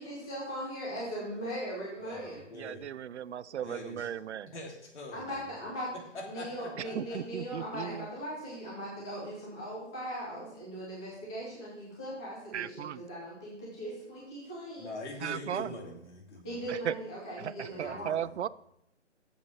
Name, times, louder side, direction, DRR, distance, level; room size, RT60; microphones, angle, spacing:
voice 1, 0.0-2.4 3.5-3.8 5.1-5.9 6.2-14.9 16.4-18.1, equal, 5° left, -6 dB, 0.4 m, -39 dB
voice 2, 2.0-2.8 3.6-4.1 4.4-5.5 6.1-7.2 14.8-16.6 17.7-18.3, left 2 dB, 65° left, 0 dB, 3.4 m, -44 dB
voice 3, 2.6-4.5 6.9-8.1 12.5-13.0 15.2-15.7 16.7-16.9 17.4-18.5, right 10 dB, 65° right, 19 dB, 0.5 m, -36 dB
8.5 x 7.2 x 5.8 m, 0.77 s
hypercardioid pair, 145°, 37 cm